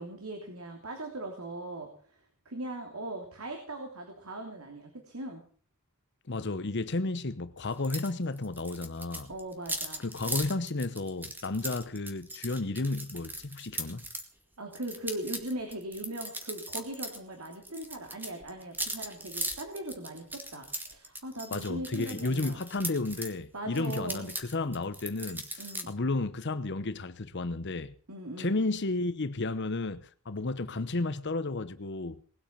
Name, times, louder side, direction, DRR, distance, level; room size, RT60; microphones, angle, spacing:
voice 1, 0.0-5.4 9.3-10.0 14.6-22.6 23.5-24.3 25.6-25.9 28.1-28.6, right 1 dB, 85° right, 3.1 m, -39 dB
voice 2, 6.3-9.3 10.0-14.0 21.5-27.9 28.4-32.2, left 2 dB, 55° left, 0.9 m, -32 dB
sound 1, 7.8-8.1 8.4-14.3 14.7-17.2 17.4-23.3 23.7-25.8, right 1 dB, 10° right, 2.1 m, -38 dB
20.0 x 8.6 x 7.4 m
head